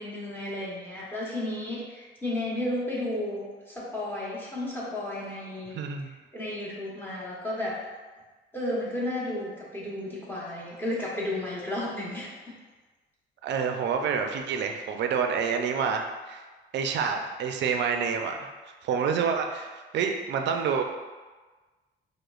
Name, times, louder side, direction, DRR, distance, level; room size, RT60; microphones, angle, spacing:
voice 1, 0.0-5.7 6.3-7.8 8.5-12.5, left 1 dB, 10° left, -6 dB, 1.0 m, -33 dB
voice 2, 5.7-6.1 13.4-16.4 16.7-18.5 18.8-20.8, right 6 dB, 65° right, 5 dB, 0.4 m, -28 dB
4.8 x 2.1 x 2.4 m, 1.3 s
cardioid pair, 90°, 20 cm